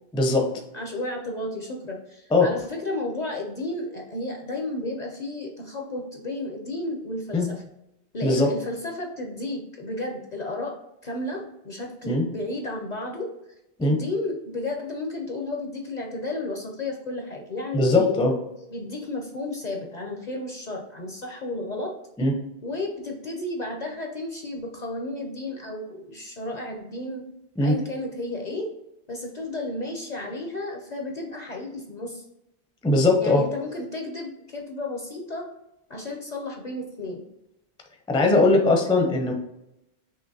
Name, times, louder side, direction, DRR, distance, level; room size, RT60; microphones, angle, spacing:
voice 1, 0.1-0.5 2.3-2.5 7.3-7.5 8.2-8.6 12.1-12.2 13.8-14.0 17.7-18.3 22.2-22.3 27.6-27.8 32.8-33.4 38.1-39.3, left 2 dB, 5° left, 2 dB, 0.5 m, -20 dB
voice 2, 0.7-7.6 8.1-10.8 11.0-13.3 13.8-18.1 18.7-21.9 22.6-27.2 27.6-28.7 29.1-32.3 33.2-35.5 35.9-37.2 38.2-38.5, left 2 dB, 45° left, 1 dB, 0.7 m, -32 dB
5.7 x 2.9 x 2.7 m, 0.86 s
omnidirectional pair, 1.1 m